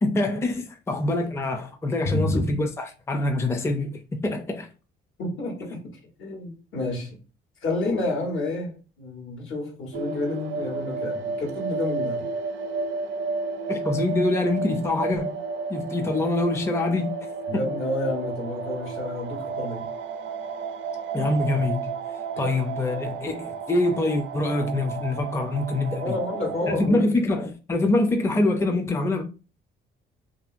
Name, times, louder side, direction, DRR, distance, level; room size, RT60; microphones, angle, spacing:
voice 1, 0.0-4.7 13.7-15.4 15.7-17.2 17.5-17.6 21.1-21.9 22.4-26.2 26.7-29.2, left 2 dB, 15° left, 0.4 m, -25 dB
voice 2, 2.0-2.6 5.2-5.9 6.2-7.2 7.6-12.3 17.5-19.9 22.3-22.5 25.9-27.1, left 2 dB, 75° left, 1.3 m, -29 dB
sound 1, 9.9-26.9, right 4 dB, 70° right, 0.4 m, -32 dB
2.9 x 2.7 x 2.5 m
cardioid pair, 90°, 20 cm